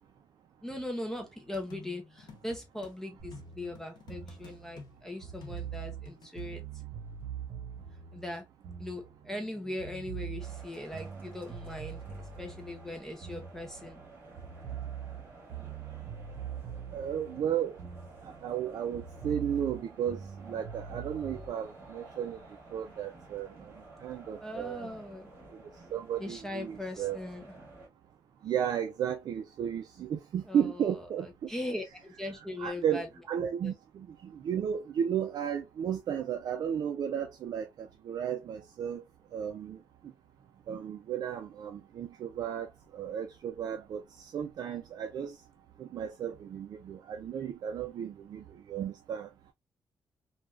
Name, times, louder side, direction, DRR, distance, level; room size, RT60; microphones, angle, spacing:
voice 1, 0.6-6.6 8.1-8.4 8.8-14.0 24.4-25.3 26.2-27.4 30.5-33.1 33.6-33.7, left 1 dB, 5° left, 0.5 m, -40 dB
sound 1, 1.5-2.9 3.3-6.4, left 4 dB, 75° left, 0.8 m, -51 dB
sound 2, 3.2-9.5 9.8-14.1 14.4-18.6 18.9-21.5, right 8 dB, 85° right, 0.7 m, -43 dB
sound 3, 10.4-27.9, right 2 dB, 25° right, 1.6 m, -52 dB
voice 2, 16.9-17.7 18.4-20.2 20.5-22.4 22.7-23.5 24.0-24.9 25.9-27.2 28.4-31.3 32.6-34.1 34.4-39.0 39.3-39.8 40.7-42.7 42.9-45.3 45.8-48.4 48.7-49.3, right 9 dB, 60° right, 0.3 m, -34 dB
3.3 x 2.2 x 2.3 m
wide cardioid pair, 160°, 8 cm